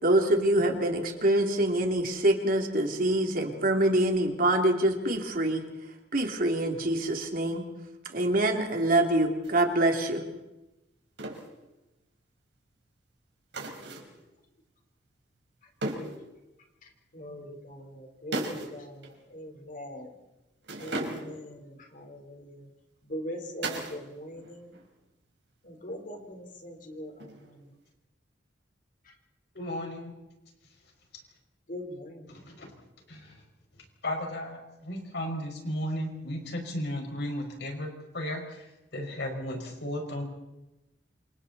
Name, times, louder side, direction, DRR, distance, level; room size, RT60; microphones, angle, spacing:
voice 1, 0.0-5.6 6.1-7.6 8.1-10.2, right 1 dB, 55° right, 3 dB, 3.1 m, -25 dB
sound 1, 9.4-9.7 11.2-11.5 13.5-14.2 15.8-16.2 18.3-18.8 19.0-19.2 20.6-21.5 23.6-24.1 24.3-24.9 27.2-27.7, right 2 dB, 85° right, 4.7 m, -36 dB
voice 2, 17.1-20.1 20.8-22.6 23.1-24.7 25.6-27.3 31.7-32.3, equal, 50° left, 3 dB, 4.2 m, -41 dB
voice 3, 29.5-30.2 32.3-32.7 33.1-33.4 34.0-38.7 38.9-40.2, left 1 dB, 65° left, 2 dB, 5.7 m, -35 dB
28.0 x 27.0 x 4.2 m, 0.97 s
head